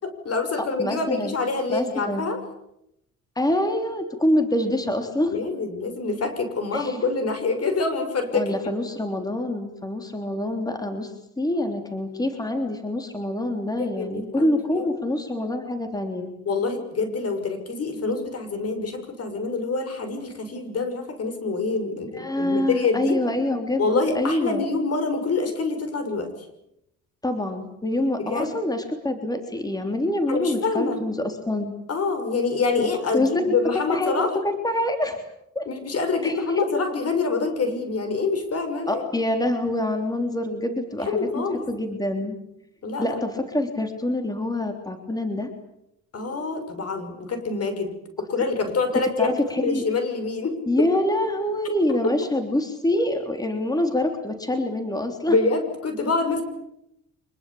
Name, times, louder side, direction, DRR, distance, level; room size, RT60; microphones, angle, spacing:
voice 1, 0.0-2.4 5.3-8.5 13.8-14.9 16.5-23.2 23.8-26.5 28.2-28.5 30.3-31.0 31.9-34.3 35.7-39.0 41.1-41.7 42.8-43.2 46.1-47.9 48.2-50.6 55.3-56.4, left 4 dB, 55° left, 8 dB, 6.4 m, -26 dB
voice 2, 0.6-1.4 1.7-2.3 3.4-5.4 6.7-7.0 8.3-16.3 22.1-24.7 27.2-31.8 32.8-32.9 33.1-35.2 35.6-35.7 36.2-36.7 38.9-42.4 43.0-45.5 48.9-49.8 50.7-55.4, left 1 dB, 10° left, 6 dB, 3.5 m, -26 dB
25.5 x 22.0 x 8.7 m, 0.83 s
cardioid pair, 90°, 30 cm